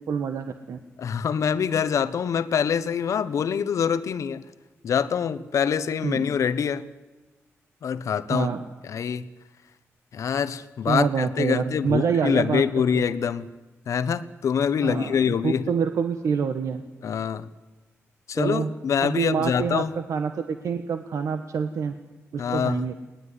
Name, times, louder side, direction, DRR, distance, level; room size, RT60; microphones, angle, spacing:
voice 1, 0.0-0.8 6.0-6.3 8.3-8.6 10.9-12.6 12.9-13.0 14.8-16.8 18.4-18.7 19.0-19.8 20.1-21.9 22.3-22.9, right 6 dB, 85° right, 8 dB, 1.2 m, -26 dB
voice 2, 1.0-4.4 4.8-6.9 7.8-8.5 8.8-9.3 10.1-13.4 13.9-15.7 17.0-17.5 18.3-20.0 22.4-22.9, left 7 dB, 80° left, 13 dB, 1.1 m, -25 dB
22.0 x 19.0 x 9.8 m, 1.1 s
cardioid pair, 75°, 5 cm